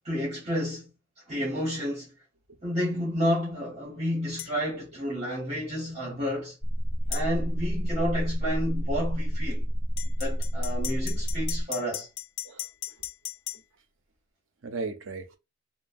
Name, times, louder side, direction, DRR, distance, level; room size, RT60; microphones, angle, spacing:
voice 1, 0.0-0.9 1.3-2.1 2.6-6.5 7.1-9.6 10.2-12.1, equal, 35° right, 1.1 m, -30 dB
sound 1, 4.4-4.5 7.1-7.3 10.0-13.6, left 11 dB, 60° left, 0.4 m, -37 dB
sound 2, 6.6-11.6, equal, 5° right, 0.4 m, -29 dB
voice 2, 12.4-13.1 13.5-13.6 14.6-15.4, right 3 dB, 80° right, 0.6 m, -38 dB
3.0 x 2.1 x 2.5 m
head